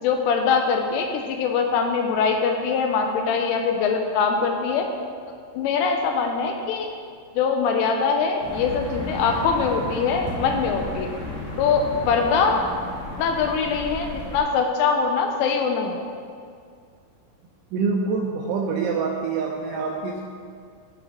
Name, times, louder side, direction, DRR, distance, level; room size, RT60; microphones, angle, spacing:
voice 1, 0.0-4.9 5.5-6.9 7.3-11.1 11.6-12.6 13.2-16.0, left 5 dB, 85° left, 4 dB, 3.0 m, -23 dB
sound 1, 8.4-14.4, left 1 dB, 40° left, 2.3 m, -33 dB
voice 2, 17.7-20.2, right 4 dB, 80° right, 0 dB, 2.7 m, -25 dB
15.0 x 5.3 x 3.5 m, 2.2 s
omnidirectional pair, 5.9 m